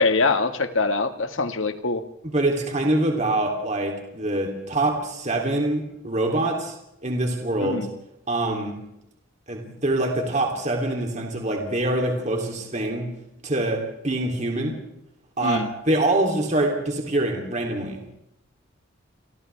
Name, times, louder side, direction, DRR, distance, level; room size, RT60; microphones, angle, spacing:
voice 1, 0.0-2.0 7.6-7.9 15.4-15.7, left 3 dB, 85° left, 8 dB, 1.8 m, -23 dB
voice 2, 2.2-6.8 7.0-7.9 8.3-8.7 9.5-13.1 13.4-14.8 15.4-18.1, right 1 dB, 35° right, 2 dB, 3.1 m, -25 dB
28.5 x 26.0 x 3.5 m, 0.80 s
head